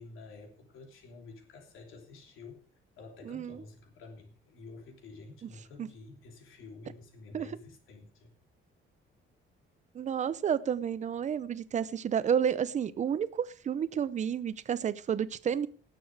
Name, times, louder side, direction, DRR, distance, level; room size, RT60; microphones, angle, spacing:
voice 1, 0.0-2.7 3.0-8.3, left 3 dB, 75° left, 3 dB, 3.1 m, -50 dB
voice 2, 3.3-3.6 5.8-5.9 7.3-7.5 9.9-15.7, right 8 dB, 35° right, 16 dB, 0.7 m, -31 dB
18.5 x 6.9 x 4.8 m, 0.41 s
cardioid pair, 155°, 21 cm